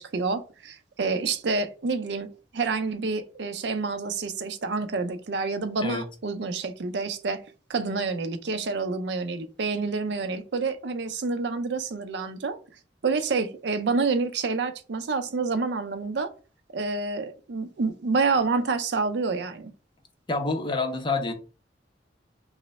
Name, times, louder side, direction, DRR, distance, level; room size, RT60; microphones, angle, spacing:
voice 1, 0.0-2.3 2.5-7.4 7.7-12.6 13.0-16.3 16.7-19.7, right 4 dB, 65° right, 0.5 m, -28 dB
voice 2, 20.3-21.3, left 3 dB, 25° left, 0.5 m, -27 dB
3.1 x 2.0 x 4.0 m
head